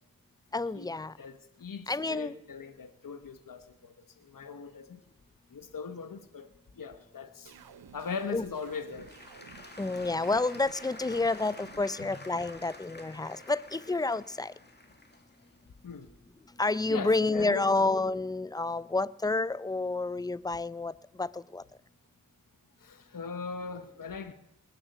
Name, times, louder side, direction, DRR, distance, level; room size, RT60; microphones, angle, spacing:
voice 1, 0.5-1.1 1.9-2.4 8.3-8.4 9.8-14.5 16.6-20.9 21.2-21.6, left 3 dB, 10° left, 19 dB, 0.5 m, -29 dB
voice 2, 1.2-5.0 5.5-6.5 6.8-7.5 7.9-9.1 12.0-12.2 15.8-16.1 16.9-17.8 22.8-24.3, left 5 dB, 65° left, 9 dB, 1.1 m, -40 dB
sound 1, 7.5-11.8, right 7 dB, 85° right, 0.7 m, -53 dB
Applause / Crowd, 8.4-17.3 17.9-18.0, left 2 dB, 30° left, 2.0 m, -50 dB
20.0 x 7.4 x 8.1 m, 0.84 s
cardioid pair, 45°, 36 cm